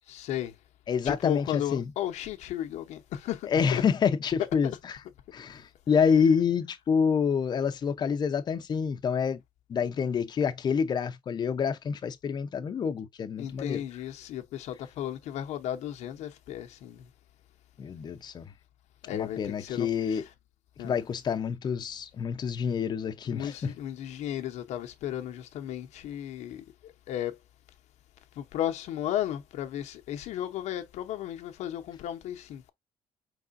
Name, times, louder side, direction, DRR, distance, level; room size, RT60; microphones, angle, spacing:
voice 1, 0.1-0.5 1.0-3.9 4.4-4.8 5.9-6.4 13.4-17.1 19.0-20.3 20.8-21.0 23.2-27.4 28.4-32.7, left 11 dB, 85° left, 0.8 m, -35 dB
voice 2, 0.9-1.9 3.5-5.0 5.3-9.4 9.7-13.8 17.8-18.4 19.1-20.2 20.8-23.7, left 6 dB, 40° left, 0.6 m, -27 dB
4.8 x 3.7 x 2.5 m
cardioid pair, 130°, 11 cm